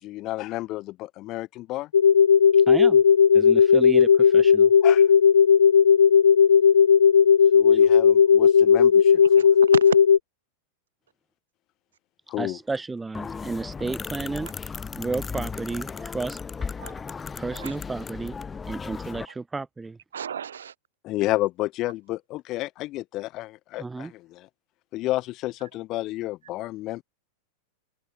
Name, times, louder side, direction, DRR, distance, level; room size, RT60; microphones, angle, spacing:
voice 1, 0.0-1.9 4.8-5.1 7.5-9.5 12.3-12.6 21.0-24.5 24.9-27.0, left 17 dB, 35° left, 5.1 m, -31 dB
sound 1, 1.9-10.2, left 7 dB, 70° left, 0.7 m, -16 dB
voice 2, 2.5-3.0 3.3-4.7 7.7-7.8 12.4-14.5 14.9-16.4 17.4-18.4 18.7-20.0 23.8-24.1, right 3 dB, 10° right, 1.6 m, -32 dB
voice 3, 9.4-10.0 16.8-17.0 17.5-17.8 19.3-19.4 20.1-20.7, right 8 dB, 65° right, 2.5 m, -32 dB
sound 2, 13.1-19.2, left 5 dB, 15° left, 1.5 m, -35 dB
figure-of-eight pair, 90°, 0 cm